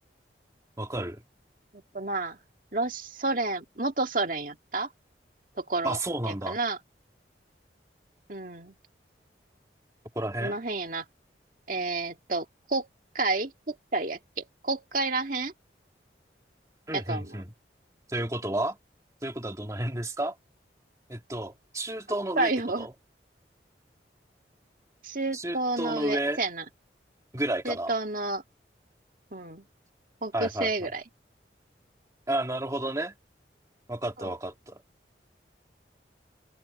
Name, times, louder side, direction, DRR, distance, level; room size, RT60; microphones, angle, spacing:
voice 1, 0.8-1.2 5.8-6.6 10.2-10.6 16.9-17.5 18.1-18.8 19.2-20.4 21.1-22.5 22.8-22.9 25.3-26.4 27.3-27.9 30.3-30.7 32.3-33.1 33.9-34.8, right 1 dB, 20° right, 2.1 m, -31 dB
voice 2, 1.7-2.4 2.7-4.9 5.6-6.0 6.3-6.8 8.3-8.7 10.4-11.1 11.7-12.9 13.1-15.5 16.9-17.4 22.4-22.9 25.0-26.6 27.6-28.4 29.3-29.6 30.2-31.0 34.2-34.3, right 2 dB, 50° right, 1.9 m, -30 dB
head